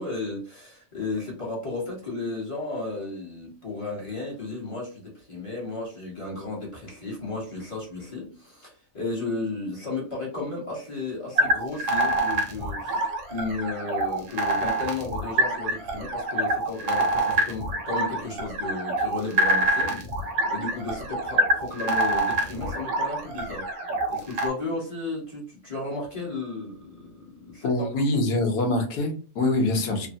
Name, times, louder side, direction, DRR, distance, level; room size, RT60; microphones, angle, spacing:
voice 1, 0.0-20.0 20.5-23.7 24.1-28.0, left 3 dB, 25° left, -5 dB, 0.9 m, -34 dB
sound 1, 11.4-24.5, right 2 dB, 85° right, 1.4 m, -26 dB
voice 2, 27.6-30.1, left 2 dB, 70° left, 3 dB, 1.2 m, -24 dB
3.2 x 2.1 x 2.6 m, 0.38 s
omnidirectional pair, 1.8 m